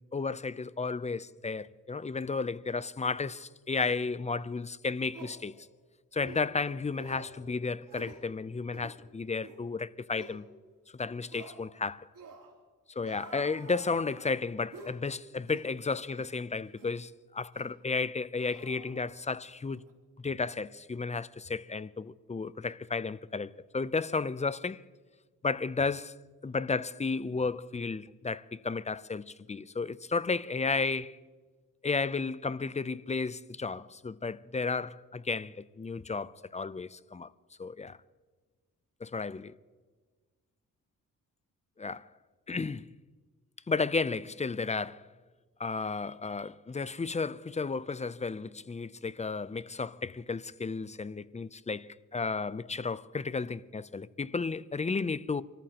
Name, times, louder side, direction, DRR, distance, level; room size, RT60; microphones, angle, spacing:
voice 1, 0.0-5.5 6.1-10.4 10.9-12.1 12.9-19.8 20.2-24.8 25.4-26.2 26.4-31.2 31.8-37.3 37.6-38.0 39.0-39.5 41.8-42.1 42.5-42.9 43.7-45.0 45.6-55.4, left 4 dB, 20° left, 0.5 m, -33 dB
sound 1, 4.4-4.5 5.1-5.4 6.2-6.5 6.9-7.4 7.9-8.2 8.7-9.0 9.4-9.6 10.1-10.4 11.3-11.6 12.1-12.5 13.0-14.3 14.7-15.0 15.5-15.7 16.2-16.3 16.8-17.0 17.5-17.7 18.4-19.4 19.7-19.9, right 4 dB, 75° right, 3.2 m, -49 dB
26.5 x 14.0 x 3.0 m
cardioid pair, 65°, 33 cm